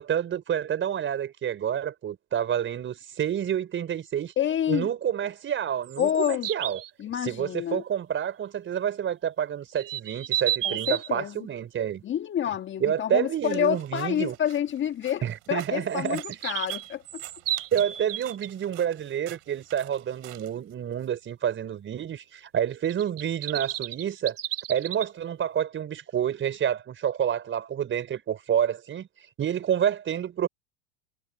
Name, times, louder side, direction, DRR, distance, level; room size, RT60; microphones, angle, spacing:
voice 1, 0.0-4.3 4.7-6.8 7.2-12.0 12.8-14.4 15.2-16.4 17.7-24.4 24.7-29.1 29.4-30.5, right 9 dB, 30° right, 5.3 m, -28 dB
voice 2, 4.4-4.9 6.0-6.5 7.0-7.8 10.6-11.3 12.0-17.2, left 10 dB, 30° left, 1.6 m, -28 dB
sound 1, 5.8-6.9 9.8-11.1 15.9-18.5 22.8-25.1, right 12 dB, 85° right, 3.1 m, -32 dB
sound 2, 13.4-21.1, right 30 dB, 60° right, 7.7 m, -50 dB
hypercardioid pair, 100°, 37 cm